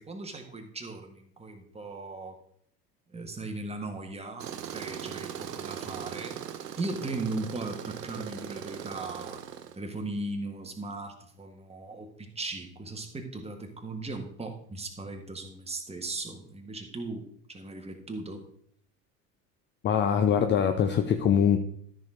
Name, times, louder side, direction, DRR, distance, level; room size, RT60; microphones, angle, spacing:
voice 1, 0.0-2.4 3.1-6.3 6.8-9.4 9.7-18.4, right 2 dB, 10° right, 3 dB, 1.8 m, -38 dB
Tools, 4.4-9.8, right 9 dB, 75° right, 0.8 m, -39 dB
voice 2, 19.8-21.6, left 8 dB, 25° left, 7 dB, 0.6 m, -23 dB
13.5 x 6.3 x 3.9 m, 0.64 s
figure-of-eight pair, 70°, 49 cm